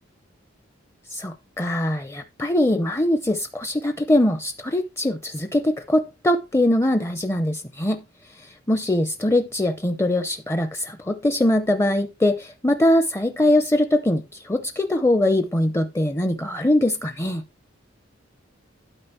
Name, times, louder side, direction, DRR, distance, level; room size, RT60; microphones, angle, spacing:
voice 1, 1.1-8.0 8.4-17.4, left 1 dB, 15° left, 0.6 m, -22 dB
12.0 x 5.1 x 4.4 m
head